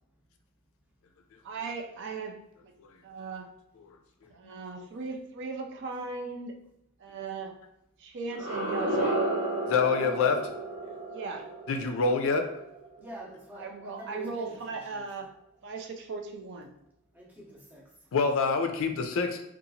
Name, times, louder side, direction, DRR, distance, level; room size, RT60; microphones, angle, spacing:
voice 1, 1.4-2.7 3.0-3.5 4.3-6.6 7.0-7.5 8.0-9.1 11.1-11.5 13.6-15.3 15.6-16.7, right 4 dB, 55° right, 3 dB, 0.4 m, -38 dB
sound 1, 8.3-13.2, right 2 dB, 75° right, 1.2 m, -32 dB
voice 2, 9.7-10.4 11.7-12.5 18.1-19.4, left 4 dB, 65° left, 5 dB, 0.4 m, -26 dB
voice 3, 13.0-15.0 17.1-17.9, right 1 dB, 10° right, -3 dB, 0.6 m, -46 dB
2.8 x 2.4 x 2.6 m, 0.82 s
head